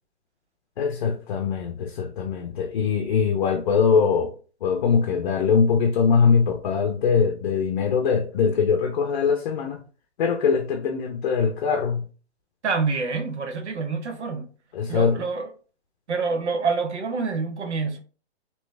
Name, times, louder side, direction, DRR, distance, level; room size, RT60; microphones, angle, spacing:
voice 1, 0.8-4.3 4.6-9.8 10.2-12.1 14.7-15.2, left 6 dB, 45° left, 0.6 m, -22 dB
voice 2, 12.6-14.5 14.9-15.5 16.1-18.0, right 4 dB, 80° right, 1.0 m, -27 dB
3.2 x 3.0 x 3.2 m
hypercardioid pair, 145°, 34 cm